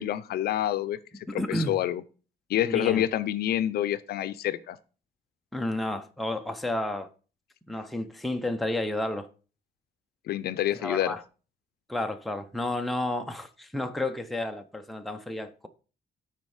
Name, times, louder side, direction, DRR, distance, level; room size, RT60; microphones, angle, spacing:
voice 1, 0.0-2.0 2.5-4.8 10.3-11.1, left 12 dB, 65° left, 0.5 m, -28 dB
voice 2, 1.3-1.8 2.6-3.1 5.5-7.1 7.7-9.3 10.7-11.2 11.9-15.7, left 1 dB, ahead, 0.5 m, -31 dB
9.5 x 4.3 x 4.8 m
cardioid pair, 165°, 17 cm